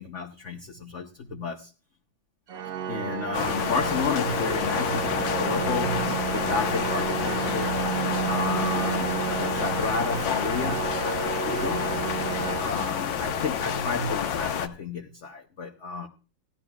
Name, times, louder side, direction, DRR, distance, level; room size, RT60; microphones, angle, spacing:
voice 1, 0.0-1.7 2.9-7.8 8.3-11.9 12.6-16.1, left 4 dB, 50° left, 1.0 m, -32 dB
Organ, 2.5-13.4, right 10 dB, 60° right, 1.1 m, -32 dB
sound 1, 3.3-14.7, left 8 dB, 85° left, 1.6 m, -29 dB
17.0 x 12.0 x 2.3 m
omnidirectional pair, 2.0 m